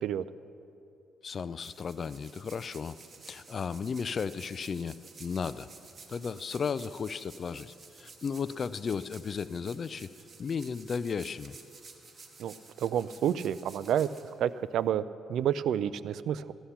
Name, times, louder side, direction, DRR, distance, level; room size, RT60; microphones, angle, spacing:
voice 1, 1.2-3.0 3.3-5.7 6.1-10.1 10.4-11.6, left 6 dB, 45° left, 15 dB, 0.4 m, -35 dB
sound 1, 1.3-14.9, right 4 dB, 40° right, 1.7 m, -53 dB
voice 2, 12.4-14.1 14.4-15.0 15.3-16.5, right 10 dB, 75° right, 16 dB, 0.4 m, -29 dB
15.0 x 11.5 x 5.8 m, 2.7 s
cardioid pair, 90°, 0 cm